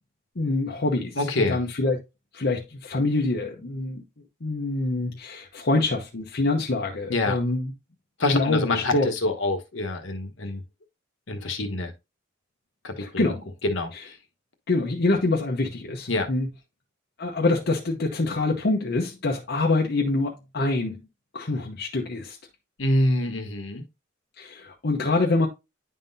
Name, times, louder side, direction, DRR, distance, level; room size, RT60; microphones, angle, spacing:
voice 1, 0.4-2.0 2.3-4.0 4.4-7.7 8.3-9.1 13.0-13.5 13.9-14.0 14.7-16.5 17.2-21.0 21.3-22.4 24.4-25.5, left 2 dB, 55° left, 0.8 m, -25 dB
voice 2, 1.2-1.6 7.1-7.4 8.2-10.6 11.3-11.9 12.8-13.3 13.6-14.1 16.1-16.3 22.8-23.8, left 2 dB, 70° left, 1.2 m, -26 dB
10.0 x 3.8 x 2.6 m
head